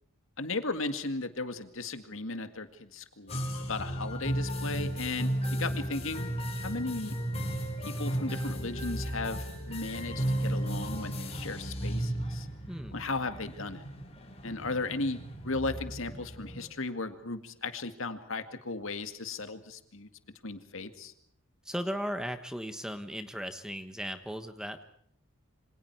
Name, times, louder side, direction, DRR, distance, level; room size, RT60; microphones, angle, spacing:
voice 1, 0.4-6.3 6.6-7.1 7.8-12.5 12.9-13.8 14.4-20.1 20.4-21.1, left 3 dB, 65° left, 8 dB, 2.1 m, -36 dB
sound 1, 3.3-16.7, right 1 dB, 30° left, 5.1 m, -34 dB
voice 2, 12.7-13.0 21.6-24.8, equal, 5° right, 8 dB, 1.3 m, -37 dB
27.5 x 25.5 x 4.8 m, 0.66 s
head